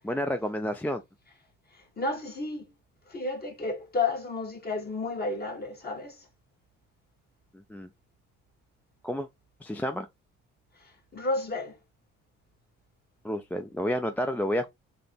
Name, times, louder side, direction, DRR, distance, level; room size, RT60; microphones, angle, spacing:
voice 1, 0.0-1.0 7.7-7.9 9.0-9.3 9.6-10.1 13.2-14.7, equal, 5° left, 0.4 m, -30 dB
voice 2, 2.0-2.7 3.1-6.1 11.1-11.7, left 3 dB, 30° left, 1.5 m, -31 dB
3.9 x 2.9 x 3.4 m
cardioid pair, 90°, 30 cm